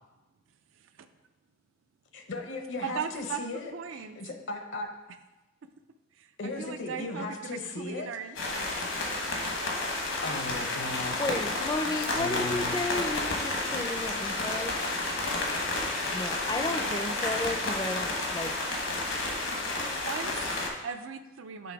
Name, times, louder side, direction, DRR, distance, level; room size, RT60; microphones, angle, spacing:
voice 1, 0.7-1.1 2.8-4.2 6.1-6.3 6.6-8.7 11.7-12.3 16.4-17.3 20.0-21.7, right 6 dB, 80° right, 9 dB, 0.4 m, -39 dB
voice 2, 2.1-4.9 6.4-8.1 10.2-11.2 12.1-12.8, left 2 dB, 65° left, 4 dB, 0.7 m, -37 dB
sound 1, 8.4-20.7, left 2 dB, 80° left, 1.2 m, -31 dB
voice 3, 11.2-14.7 16.1-18.5, left 2 dB, 20° left, 6 dB, 0.4 m, -33 dB
7.0 x 3.3 x 4.7 m, 1.1 s
head